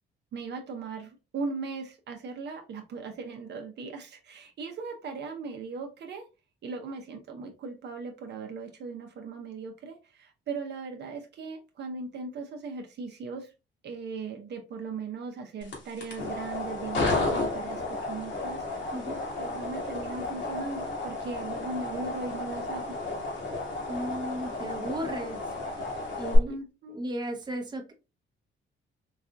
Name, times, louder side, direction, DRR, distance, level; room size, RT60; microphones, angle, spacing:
voice 1, 0.3-6.3 6.6-13.5 13.8-19.1 19.3-23.0 26.5-27.0, right 4 dB, 60° right, 4 dB, 0.7 m, -38 dB
sound 1, 15.6-26.4, left 2 dB, 65° left, 1.5 m, -32 dB
voice 2, 23.9-25.4 25.7-25.8 26.1-26.6 26.9-27.9, equal, 20° right, 3 dB, 0.8 m, -35 dB
4.0 x 2.5 x 2.3 m, 0.29 s
cardioid pair, 90°, 20 cm